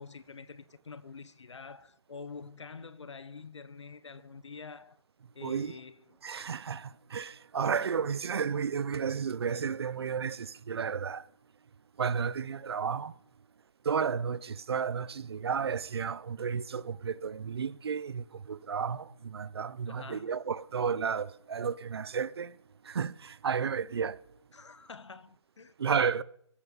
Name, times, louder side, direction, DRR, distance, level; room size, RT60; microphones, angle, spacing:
voice 1, 0.0-5.0 5.3-6.2 19.9-20.3 24.5-25.7, left 5 dB, 75° left, 1.3 m, -47 dB
voice 2, 5.4-5.7 6.2-11.2 12.0-13.1 13.8-22.5 22.9-24.2 25.8-26.2, right 6 dB, 55° right, 0.9 m, -32 dB
16.5 x 13.0 x 5.6 m
hypercardioid pair, 155°, 15 cm